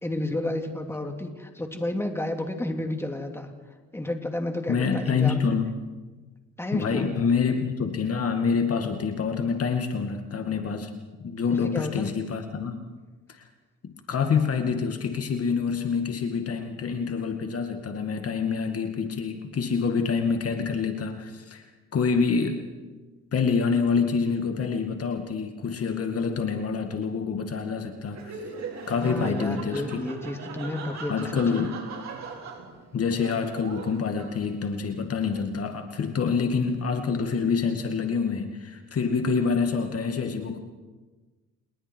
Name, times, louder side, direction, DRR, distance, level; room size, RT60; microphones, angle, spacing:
voice 1, 0.0-3.5 3.9-5.4 6.6-7.3 11.5-12.1 29.0-31.6, left 1 dB, 10° left, 4 dB, 2.7 m, -31 dB
voice 2, 4.7-5.7 6.7-10.9 11.2-12.8 13.3-13.4 13.8-21.6 21.9-23.0 23.3-28.4 28.9-30.1 31.1-31.8 32.9-40.6, left 5 dB, 50° left, 5 dB, 2.1 m, -27 dB
Laughter, 28.1-34.7, right 5 dB, 60° right, 4.7 m, -40 dB
28.5 x 20.5 x 4.7 m, 1.3 s
cardioid pair, 90°, 30 cm